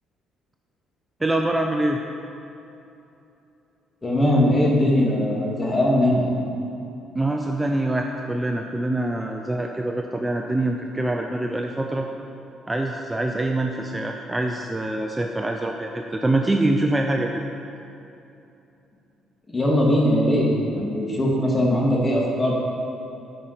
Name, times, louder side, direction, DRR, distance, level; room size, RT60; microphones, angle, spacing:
voice 1, 1.2-2.0 7.2-12.1 12.7-17.4, right 1 dB, 15° right, 3 dB, 0.6 m, -24 dB
voice 2, 4.0-6.2 19.5-22.6, left 1 dB, 25° left, -3 dB, 2.5 m, -20 dB
10.0 x 5.5 x 6.7 m, 2.8 s
cardioid pair, 85°, 0 cm